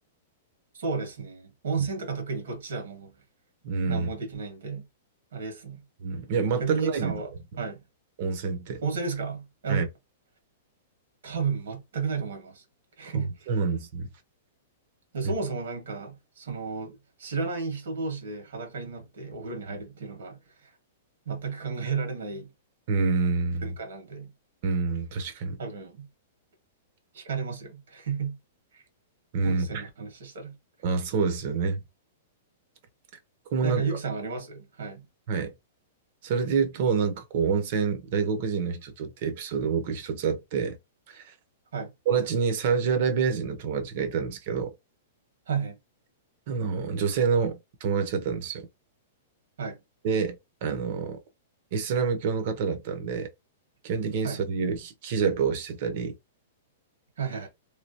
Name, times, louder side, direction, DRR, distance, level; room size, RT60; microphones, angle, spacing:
voice 1, 0.7-3.2 3.9-4.9 5.3-5.8 6.6-7.8 8.8-9.9 11.2-12.6 13.0-13.5 15.1-20.7 21.2-22.5 23.6-24.3 25.6-26.1 27.1-28.4 28.7-28.8 29.4-30.6 33.6-35.1 41.7-41.9 45.5-45.8 49.6-49.8 54.2-54.4 57.2-57.5, right 5 dB, 85° right, 1.6 m, -33 dB
voice 2, 3.6-4.1 6.0-7.1 8.2-8.8 9.7-9.9 13.1-14.1 15.2-15.3 22.9-23.7 24.6-25.6 29.3-29.9 30.8-31.8 33.5-33.9 35.3-35.5 36.2-40.8 41.1-41.3 42.1-44.7 46.5-48.7 50.0-51.2 51.7-53.3 53.8-56.2, right 5 dB, 35° right, 0.5 m, -27 dB
3.1 x 2.7 x 2.7 m
supercardioid pair, 180°, 0 cm